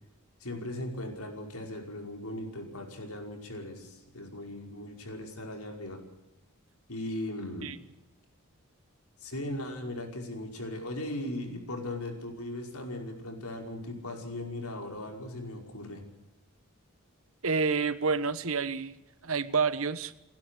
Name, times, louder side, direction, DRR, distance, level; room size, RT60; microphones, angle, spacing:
voice 1, 0.4-6.0 6.9-7.7 9.2-16.0, left 1 dB, 85° left, 2 dB, 5.3 m, -38 dB
voice 2, 17.4-19.0 19.2-20.1, right 5 dB, 70° right, 14 dB, 1.2 m, -28 dB
30.0 x 12.0 x 8.4 m, 0.99 s
head